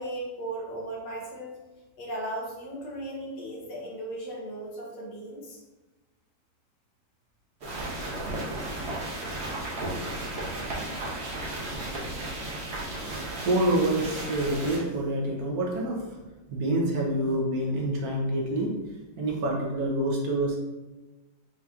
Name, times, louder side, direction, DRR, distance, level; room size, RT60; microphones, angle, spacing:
voice 1, 0.0-1.6 2.0-5.6, right 1 dB, 85° left, -2 dB, 1.7 m, -36 dB
sound 1, 7.6-14.8, right 1 dB, 45° right, 1.0 m, -34 dB
voice 2, 13.1-16.2 16.5-18.7 19.2-20.6, right 1 dB, 65° right, -1 dB, 1.2 m, -27 dB
5.7 x 2.8 x 2.4 m, 1.1 s
omnidirectional pair, 1.8 m